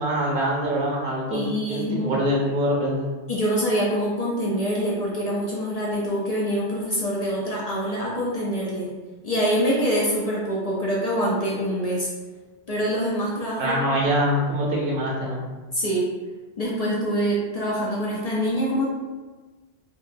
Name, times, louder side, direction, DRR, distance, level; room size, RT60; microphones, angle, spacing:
voice 1, 0.0-3.1 13.6-15.4, equal, 50° right, -3 dB, 0.8 m, -24 dB
voice 2, 1.3-2.2 3.3-8.9 9.2-12.1 12.7-13.8 15.7-16.1 16.6-18.9, equal, 65° left, -5 dB, 0.4 m, -25 dB
2.8 x 2.7 x 2.5 m, 1.3 s
omnidirectional pair, 1.3 m